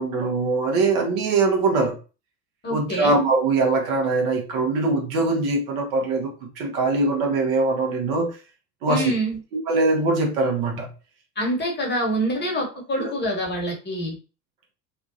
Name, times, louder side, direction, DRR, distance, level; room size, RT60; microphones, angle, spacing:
voice 1, 0.0-2.0 2.7-8.4 8.8-9.0 9.7-10.9 13.0-13.1, right 3 dB, 55° right, 1.2 m, -22 dB
voice 2, 2.6-3.2 8.9-9.4 11.4-14.2, right 1 dB, 20° left, 1.1 m, -26 dB
2.8 x 2.3 x 2.7 m
figure-of-eight pair, 75°, 50 cm